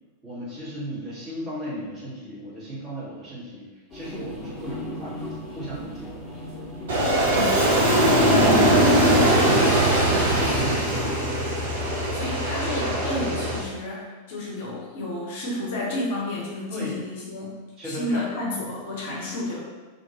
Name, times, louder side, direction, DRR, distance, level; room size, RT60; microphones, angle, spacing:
voice 1, 0.2-3.7 3.9-6.2 10.3-11.4 16.7-16.9 17.8-18.2, equal, 20° right, -9 dB, 1.4 m, -35 dB
sound 1, 3.9-10.6, equal, ahead, 1.3 m, -38 dB
Aircraft, 6.9-13.6, right 1 dB, 60° right, 0.7 m, -20 dB
voice 2, 7.3-7.6 12.1-17.6 17.8-19.6, left 1 dB, 55° left, -4 dB, 0.7 m, -31 dB
2.6 x 2.6 x 2.8 m, 1.3 s
figure-of-eight pair, 90°, 0 cm